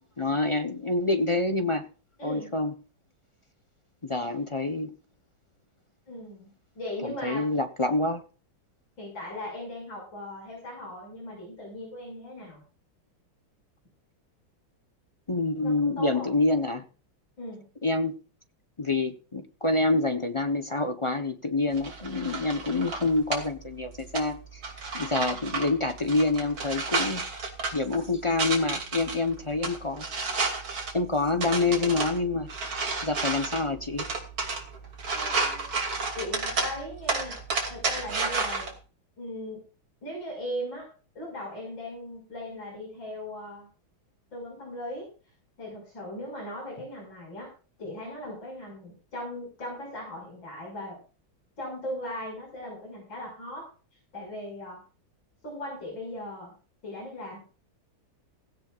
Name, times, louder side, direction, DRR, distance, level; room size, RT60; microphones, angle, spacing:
voice 1, 0.2-1.9 2.2-2.7 4.0-4.9 7.0-8.2 15.3-16.8 17.8-18.2 18.8-24.6 24.9-27.3 27.7-30.0 30.9-32.5 33.0-34.1, left 2 dB, 30° left, 6 dB, 0.6 m, -27 dB
voice 2, 6.1-6.5 6.8-7.5 9.0-12.6 15.6-16.4 17.4-17.6 35.1-35.7 36.2-37.4 37.7-38.7 39.2-39.6 40.0-40.9 41.2-43.7 44.3-45.1 45.6-47.5 47.8-51.0 51.6-53.7 54.1-54.8 55.4-56.5 56.8-57.4, left 1 dB, 65° left, -2 dB, 7.0 m, -38 dB
sound 1, 21.7-38.7, right 3 dB, 75° right, 3.6 m, -32 dB
16.5 x 16.5 x 2.5 m, 0.36 s
omnidirectional pair, 2.2 m